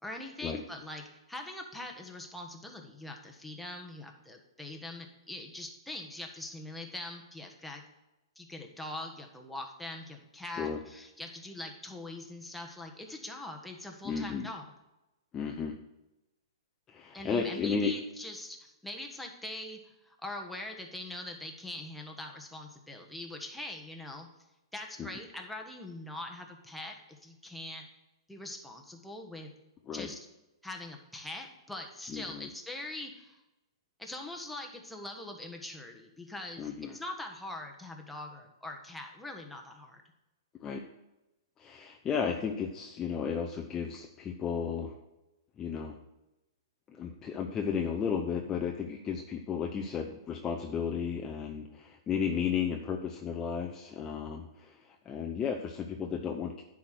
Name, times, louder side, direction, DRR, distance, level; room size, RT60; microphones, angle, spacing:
voice 1, 0.0-7.8 8.4-14.7 17.1-24.3 24.7-27.9 28.3-29.5 29.9-30.2 30.6-33.4 34.0-40.0, left 1 dB, ahead, 1 dB, 1.4 m, -42 dB
voice 2, 14.0-14.5 15.3-15.7 16.9-17.9 25.0-25.1 29.9-30.1 32.1-32.5 36.6-37.0 40.6-40.8 41.6-45.0 45.6-46.0 46.9-56.6, left 6 dB, 20° left, 2 dB, 0.7 m, -34 dB
10.0 x 4.9 x 6.1 m, 0.98 s
hypercardioid pair, 125°, 3 cm